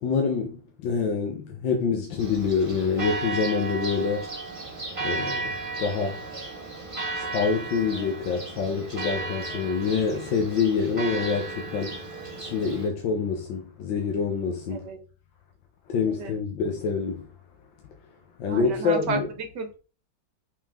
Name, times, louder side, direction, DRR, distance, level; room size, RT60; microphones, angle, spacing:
voice 1, 0.0-4.3 5.0-5.5 5.8-6.2 7.1-12.0 12.3-14.9 15.9-17.2 18.4-19.3, left 5 dB, 75° left, 1.7 m, -26 dB
Church bell, 2.2-12.9, right 3 dB, 20° right, 1.4 m, -34 dB
voice 2, 18.5-19.8, right 4 dB, 60° right, 1.8 m, -33 dB
5.4 x 5.3 x 3.6 m
omnidirectional pair, 2.1 m